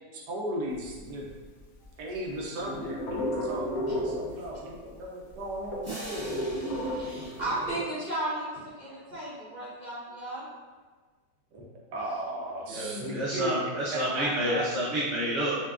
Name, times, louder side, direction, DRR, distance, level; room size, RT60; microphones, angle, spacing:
voice 1, 0.1-1.3 2.0-6.3 11.5-11.6 11.9-13.5 13.9-14.6, right 1 dB, 75° right, -2 dB, 1.2 m, -36 dB
sound 1, 0.7-1.9 2.1-4.7 5.0-5.1 5.3-7.8, equal, 65° left, 0.9 m, -33 dB
sound 2, 5.8-8.6, right 2 dB, 10° right, 0.8 m, -44 dB
voice 2, 7.0-10.5, right 1 dB, 30° right, -11 dB, 1.2 m, -34 dB
voice 3, 12.7-15.6, right 1 dB, 60° right, -8 dB, 0.8 m, -29 dB
5.8 x 2.2 x 2.4 m, 1.4 s
omnidirectional pair, 1.8 m